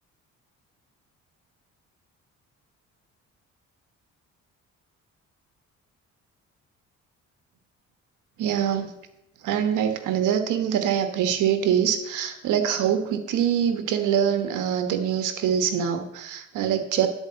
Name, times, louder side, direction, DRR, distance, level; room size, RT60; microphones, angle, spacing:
voice 1, 8.4-8.9 9.4-17.1, right 9 dB, 85° right, 8 dB, 1.3 m, -24 dB
10.5 x 4.9 x 7.7 m, 0.86 s
cardioid pair, 90°, 30 cm